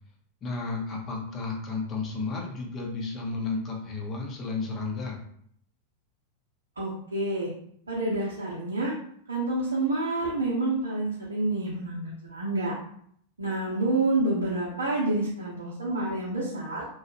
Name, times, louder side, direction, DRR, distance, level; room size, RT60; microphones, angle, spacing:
voice 1, 0.4-5.2, left 3 dB, 30° left, 0 dB, 0.8 m, -32 dB
voice 2, 6.8-7.5 7.9-8.9 9.3-12.7 13.4-16.9, right 2 dB, 75° right, -6 dB, 0.7 m, -28 dB
2.9 x 2.3 x 2.9 m, 0.66 s
figure-of-eight pair, 90°, 0 cm